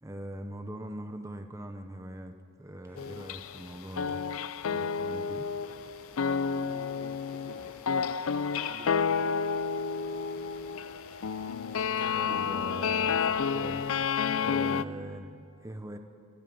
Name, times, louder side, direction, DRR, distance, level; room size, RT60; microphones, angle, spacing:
voice 1, 0.0-4.2 4.6-5.5 12.1-16.0, right 1 dB, 15° right, 6 dB, 0.8 m, -42 dB
sound 1, 2.8-14.4, equal, 10° left, 3.7 m, -55 dB
sound 2, 3.0-3.7 4.0-14.8, left 6 dB, 90° left, 0.5 m, -30 dB
voice 2, 6.5-7.8 8.6-9.5, right 1 dB, 70° right, 2 dB, 1.7 m, -50 dB
26.0 x 11.5 x 9.5 m, 2.6 s
head